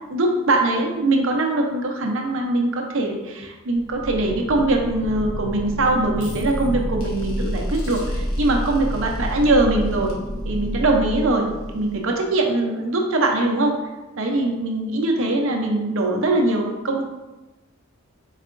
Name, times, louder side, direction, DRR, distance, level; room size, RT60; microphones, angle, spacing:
voice 1, 0.1-10.1 10.4-11.5 11.7-13.7 14.2-17.0, right 2 dB, 65° right, 1 dB, 0.7 m, -22 dB
sound 1, 3.7-12.2, equal, 70° left, 1.1 m, -29 dB
4.5 x 4.1 x 2.5 m, 1.1 s
head